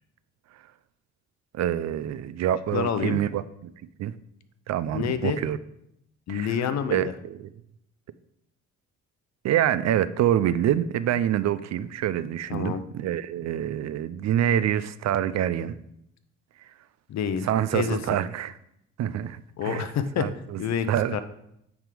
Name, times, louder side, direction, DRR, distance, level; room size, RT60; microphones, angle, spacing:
voice 1, 1.5-3.7 4.0-4.1 4.7-5.6 6.3-6.5 6.9-7.5 9.4-15.8 17.4-18.6 19.0-19.9 20.2-20.6 20.9-21.2, right 11 dB, 60° right, 0.5 m, -26 dB
voice 2, 2.7-3.2 4.9-5.4 6.3-7.0 12.5-12.8 17.1-18.0 19.6-20.3 20.6-21.2, left 7 dB, 60° left, 0.7 m, -28 dB
9.1 x 3.7 x 4.9 m
cardioid pair, 90°, 30 cm